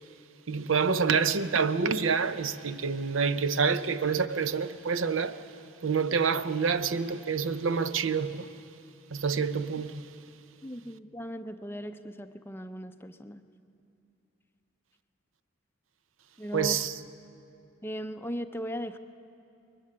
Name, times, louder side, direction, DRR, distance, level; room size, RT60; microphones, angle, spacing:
voice 1, 0.5-5.4 5.8-8.5 9.1-10.0 16.5-16.9, right 5 dB, 70° right, 0.6 m, -27 dB
voice 2, 10.6-13.4 16.4-16.9 17.8-19.0, equal, 10° left, 0.5 m, -38 dB
22.0 x 14.0 x 9.7 m
head